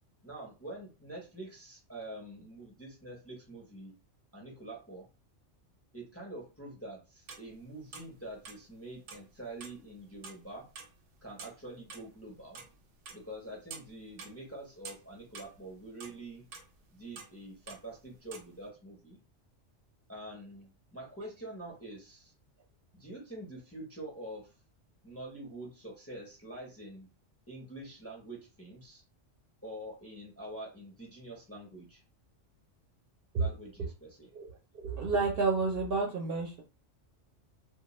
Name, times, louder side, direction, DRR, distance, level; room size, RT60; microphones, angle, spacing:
voice 1, 0.2-4.0 4.3-5.1 5.9-10.7 11.2-12.6 13.1-16.4 16.9-19.2 20.1-22.3 22.9-24.5 25.0-27.1 27.5-29.0 29.6-32.0 33.4-34.3, right 1 dB, 15° left, -1 dB, 0.5 m, -46 dB
sound 1, 7.3-7.5 7.9-8.2 8.4-9.3 9.6-9.8 10.1-10.4 10.8-11.6 11.9-12.0 12.3-15.6 16.0-16.8 17.2-18.6, right 5 dB, 80° right, 0.9 m, -48 dB
voice 2, 34.3-36.6, right 4 dB, 60° right, 0 dB, 0.7 m, -30 dB
2.3 x 2.2 x 2.9 m, 0.30 s
omnidirectional pair, 1.3 m